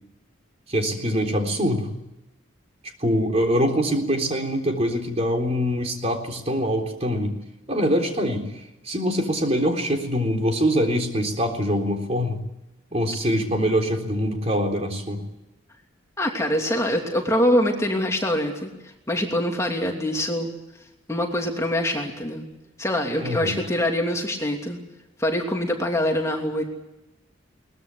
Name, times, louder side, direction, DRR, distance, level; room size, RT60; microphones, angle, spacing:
voice 1, 0.7-1.9 3.0-7.4 7.7-8.5 8.8-12.4 12.9-15.2 23.2-23.6, equal, 30° right, 3 dB, 3.8 m, -24 dB
voice 2, 16.2-20.5 21.1-22.5 22.8-24.8 25.2-26.6, left 1 dB, 15° left, 1 dB, 2.9 m, -24 dB
22.5 x 20.5 x 8.4 m, 0.95 s
head